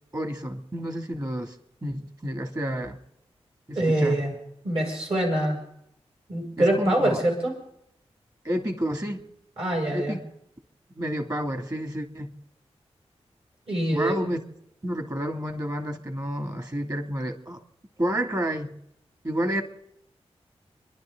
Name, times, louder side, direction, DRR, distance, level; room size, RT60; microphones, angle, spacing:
voice 1, 0.1-1.6 1.8-3.0 3.7-4.2 6.6-7.2 8.4-9.2 9.9-10.2 11.0-12.3 13.9-14.4 14.8-17.6 18.0-18.8 19.2-19.6, equal, 35° right, 6 dB, 2.7 m, -30 dB
voice 2, 3.7-4.3 4.6-5.6 6.3-7.5 9.6-10.2 13.7-14.2, right 1 dB, 60° right, 0 dB, 7.3 m, -24 dB
29.5 x 11.5 x 3.9 m, 0.76 s
cardioid pair, 50°, 11 cm